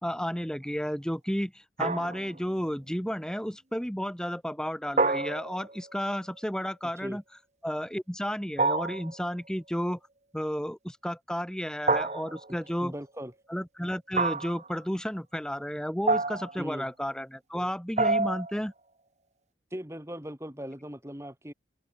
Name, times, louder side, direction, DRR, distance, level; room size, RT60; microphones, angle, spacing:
voice 1, 0.0-1.5 1.8-7.2 7.6-10.0 10.3-12.9 13.5-18.7, equal, 5° left, 1.7 m, -32 dB
sound 1, 1.8-2.4 5.0-5.8 8.6-9.2 11.9-12.6 14.1-14.7 16.1-16.6 18.0-18.6, right 3 dB, 40° right, 1.3 m, -27 dB
voice 2, 12.8-13.3 16.6-16.9 19.7-21.5, equal, 15° right, 2.6 m, -39 dB
open air
head